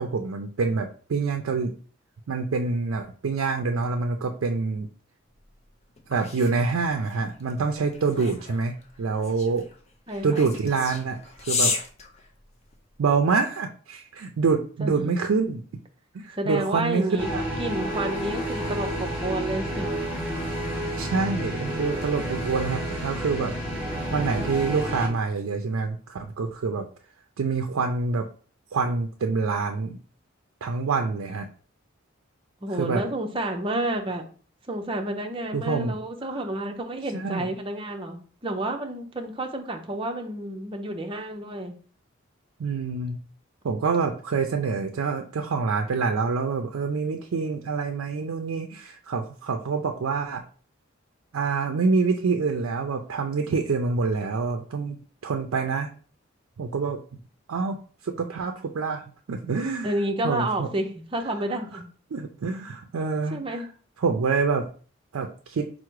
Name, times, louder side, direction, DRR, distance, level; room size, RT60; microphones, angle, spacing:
voice 1, 0.0-1.7 2.3-4.9 6.1-9.7 10.2-11.2 11.5-11.7 13.0-15.6 16.1-17.4 21.0-23.5 24.1-26.8 27.4-28.3 28.7-30.0 30.6-31.5 32.8-33.0 35.5-36.0 36.3-36.5 37.1-37.5 42.6-43.2 43.6-50.4 51.3-55.9 56.6-57.0 57.5-57.8 58.0-59.9 60.2-60.7 62.1-63.6 64.0-64.7 65.1-65.7, right 4 dB, 80° right, 4 dB, 0.4 m, -26 dB
sound 1, 5.4-13.0, left 4 dB, 30° left, 0.6 m, -33 dB
voice 2, 10.1-10.4 14.8-15.2 16.4-17.3 17.6-19.9 32.6-34.2 34.7-41.8 59.8-61.9 63.3-63.7, right 1 dB, 25° right, 3 dB, 0.6 m, -30 dB
sound 2, 17.2-25.1, equal, 10° right, 1.2 m, -30 dB
4.6 x 2.1 x 4.6 m, 0.42 s
head